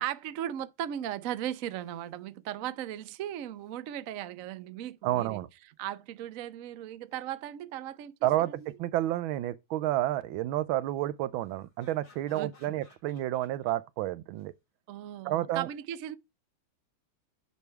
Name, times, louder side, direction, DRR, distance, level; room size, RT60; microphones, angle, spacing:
voice 1, 0.0-5.4 5.8-8.1 8.4-8.7 12.3-12.7 14.9-16.2, right 11 dB, 70° right, 0.8 m, -37 dB
sound 1, 1.2-1.3 1.6-2.2 3.3-3.7 6.9-7.5 8.3-8.7 11.4-13.8 14.3-14.5, left 4 dB, 85° left, 3.5 m, -62 dB
voice 2, 5.0-5.5 8.2-14.5 15.2-15.7, right 14 dB, 85° right, 1.4 m, -30 dB
9.6 x 3.4 x 4.5 m
omnidirectional pair, 2.2 m